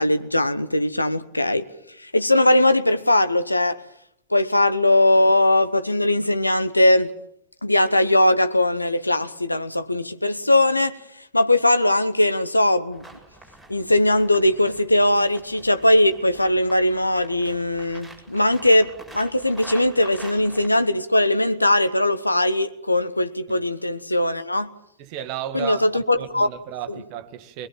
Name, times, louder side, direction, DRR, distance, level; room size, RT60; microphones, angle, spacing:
voice 1, 0.0-1.7 2.0-3.8 4.3-7.1 7.6-11.0 11.3-13.0 13.7-24.7 25.5-26.5, left 1 dB, 85° left, 1.0 m, -20 dB
sound 1, 12.9-20.7, right 1 dB, 5° left, 7.5 m, -46 dB
voice 2, 25.0-27.7, right 11 dB, 45° right, 1.6 m, -34 dB
22.0 x 21.5 x 7.4 m
figure-of-eight pair, 90°, 0 cm